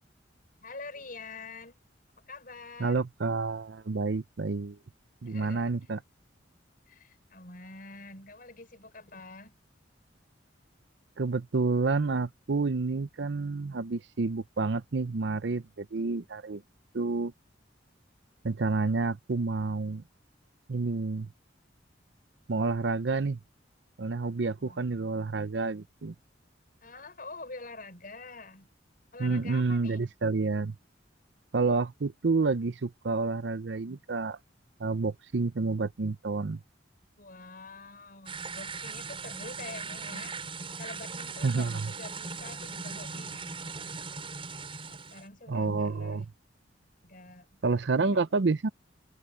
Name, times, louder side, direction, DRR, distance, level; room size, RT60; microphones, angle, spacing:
voice 1, 0.6-1.8 2.3-3.0 5.3-5.7 6.9-9.5 24.6-24.8 26.8-28.7 29.1-30.1 37.2-40.4 40.8-43.9 44.9-46.3 47.0-47.6 48.0-48.2, left 3 dB, 50° left, 5.5 m, -46 dB
voice 2, 2.8-4.8 5.2-6.0 11.2-16.6 16.9-17.3 18.4-20.0 20.7-21.3 22.5-23.4 24.0-26.1 29.2-30.8 31.5-34.4 34.8-36.6 41.4-41.9 45.5-46.2 47.6-48.7, right 3 dB, 65° right, 0.6 m, -29 dB
sound 1, 38.3-45.3, right 4 dB, 30° right, 5.9 m, -39 dB
head